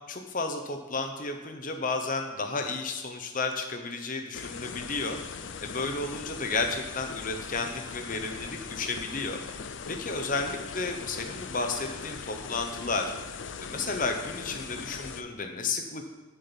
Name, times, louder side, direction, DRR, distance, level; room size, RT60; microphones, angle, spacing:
voice 1, 0.1-13.1 13.6-16.1, left 3 dB, 40° left, 5 dB, 0.9 m, -32 dB
sound 1, 4.3-15.2, left 5 dB, 60° left, 0.5 m, -40 dB
8.1 x 7.4 x 7.3 m, 1.2 s
head